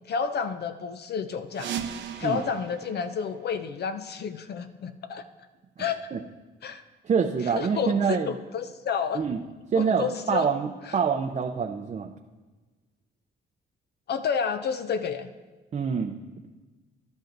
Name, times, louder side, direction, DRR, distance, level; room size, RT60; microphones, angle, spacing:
voice 1, 0.1-1.7 2.2-5.2 5.8-6.1 6.6-6.8 7.6-9.2 9.8-10.5 10.9-11.0 14.1-15.3, left 6 dB, 55° left, 9 dB, 0.5 m, -30 dB
sound 1, 1.5-4.1, right 8 dB, 65° right, 0.8 m, -38 dB
voice 2, 5.8-6.2 7.0-8.3 9.1-9.4 9.7-12.1 15.7-16.2, right 6 dB, 35° right, 4 dB, 0.5 m, -26 dB
11.5 x 10.5 x 2.6 m, 1.3 s
cardioid pair, 90°, 20 cm